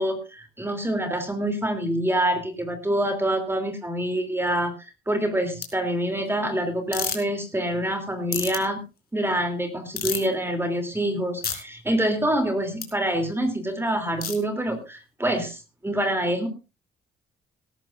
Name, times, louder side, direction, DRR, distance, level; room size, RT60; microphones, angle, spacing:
voice 1, 0.0-4.7 5.1-8.8 9.1-16.5, right 1 dB, 10° right, 6 dB, 3.2 m, -26 dB
sound 1, 5.6-5.7 6.9-7.2 8.3-8.6 10.0-10.3 11.4-11.6 12.8-12.9 14.2-14.4, left 7 dB, 50° left, 4.1 m, -28 dB
18.0 x 13.5 x 2.6 m, 0.29 s
cardioid pair, 90°, 20 cm